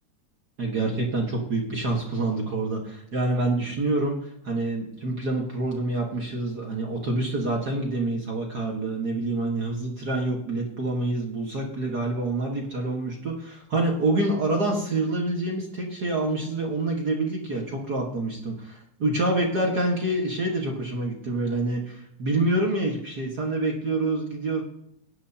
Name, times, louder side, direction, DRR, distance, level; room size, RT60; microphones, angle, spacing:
voice 1, 0.6-24.6, right 2 dB, 45° right, -1 dB, 1.3 m, -27 dB
18.0 x 10.5 x 2.9 m, 0.74 s
omnidirectional pair, 3.8 m